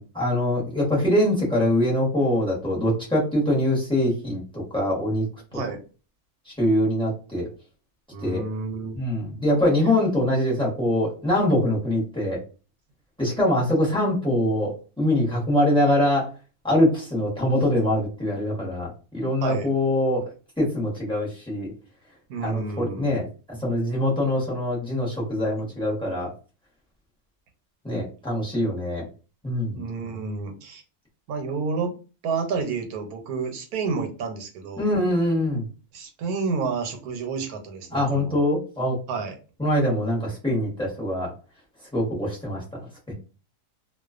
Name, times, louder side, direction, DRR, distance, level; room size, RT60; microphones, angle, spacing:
voice 1, 0.0-5.3 5.5-5.6 6.5-7.5 8.2-8.4 8.9-12.4 13.2-16.3 16.6-20.3 20.6-21.7 22.4-26.3 27.8-29.0 29.4-29.8 34.8-35.7 37.9-39.0 39.6-41.3 41.9-43.1, left 1 dB, 5° left, -4 dB, 0.7 m, -23 dB
voice 2, 8.1-9.0 19.4-19.7 22.3-23.2 29.7-30.8 31.3-31.9 32.2-34.9 35.9-38.4 39.1-39.4, right 4 dB, 80° right, 5 dB, 1.1 m, -30 dB
2.3 x 2.3 x 2.4 m, 0.34 s
omnidirectional pair, 1.6 m